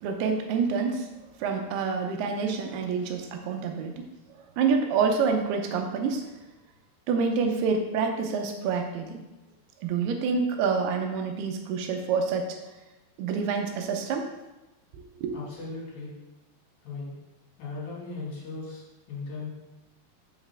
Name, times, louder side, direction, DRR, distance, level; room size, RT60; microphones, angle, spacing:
voice 1, 0.0-1.1 1.4-4.0 4.4-6.3 7.1-9.2 9.8-12.6 13.2-14.3 14.9-15.3, right 5 dB, 80° right, 4 dB, 2.5 m, -27 dB
voice 2, 15.3-16.1 16.8-17.1 17.6-19.5, left 3 dB, 65° left, -4 dB, 3.3 m, -37 dB
6.9 x 6.5 x 3.4 m, 1.0 s
omnidirectional pair, 5.0 m